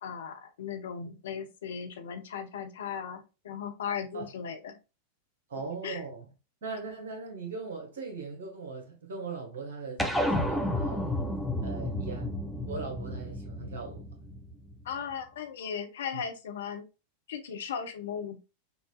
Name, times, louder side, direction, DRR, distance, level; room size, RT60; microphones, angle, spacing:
voice 1, 0.0-4.8 5.8-6.0 14.8-16.8 17.3-18.4, left 7 dB, 60° left, 0.8 m, -37 dB
voice 2, 5.5-6.2 6.6-11.1 11.6-12.4 12.6-14.0 16.1-16.2, right 4 dB, 60° right, 1.4 m, -39 dB
sound 1, 10.0-14.7, left 1 dB, ahead, 0.7 m, -31 dB
5.9 x 2.6 x 2.3 m
figure-of-eight pair, 90°, 0 cm